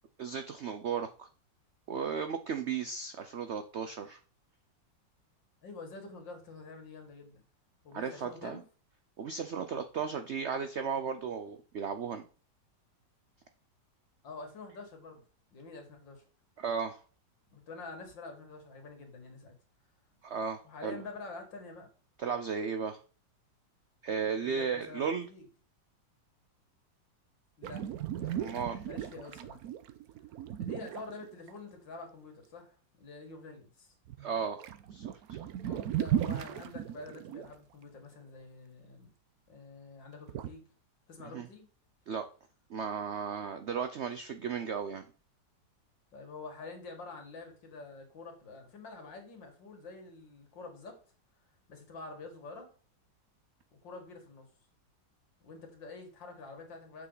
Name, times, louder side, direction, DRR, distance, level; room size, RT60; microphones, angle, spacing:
voice 1, 0.2-1.3 1.9-4.2 7.9-8.6 9.2-12.3 16.6-17.0 20.2-21.0 22.2-23.0 24.0-25.3 28.4-28.8 34.2-34.6 34.9-35.4 41.3-41.5 42.1-42.3 42.7-45.0, right 6 dB, 85° right, 0.6 m, -35 dB
voice 2, 5.6-7.4 7.8-8.6 14.2-15.2 15.5-16.3 17.5-19.5 20.6-21.9 24.4-25.4 27.6-27.8 28.1-29.6 30.6-33.9 35.6-39.1 39.5-40.7 41.1-41.7 46.1-51.0 51.7-52.7 53.8-54.5 55.4-57.1, left 3 dB, 90° left, 2.7 m, -47 dB
sound 1, 27.6-31.5 34.1-34.3 34.5-37.5 40.3-40.5, right 11 dB, 65° right, 1.0 m, -36 dB
7.7 x 6.0 x 3.9 m
omnidirectional pair, 1.9 m